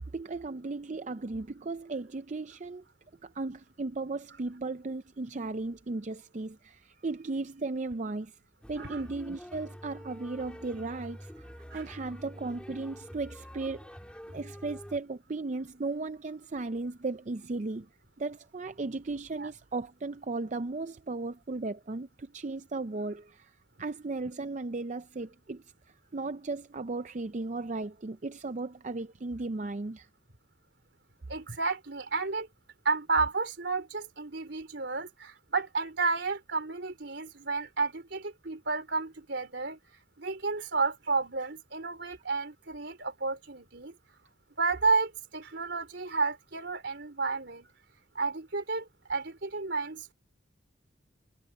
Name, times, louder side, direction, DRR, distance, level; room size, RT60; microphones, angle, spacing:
voice 1, 0.0-2.8 3.2-8.4 8.7-14.0 14.3-17.9 18.2-23.5 23.8-25.6 26.1-30.1, right 3 dB, 40° right, 0.5 m, -36 dB
sound 1, 8.6-15.0, equal, 5° left, 2.3 m, -47 dB
voice 2, 31.3-32.5 32.9-39.8 40.2-43.9 44.6-47.7 48.2-50.1, right 4 dB, 65° right, 3.6 m, -31 dB
head